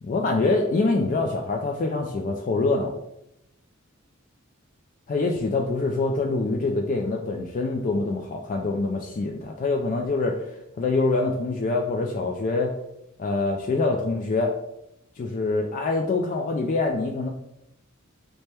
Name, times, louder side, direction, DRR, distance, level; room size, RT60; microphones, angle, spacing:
voice 1, 0.0-3.0 5.1-10.4 10.8-12.7 13.2-14.5 15.2-17.3, left 3 dB, 40° left, 1 dB, 0.3 m, -25 dB
4.2 x 2.1 x 3.2 m, 0.83 s
head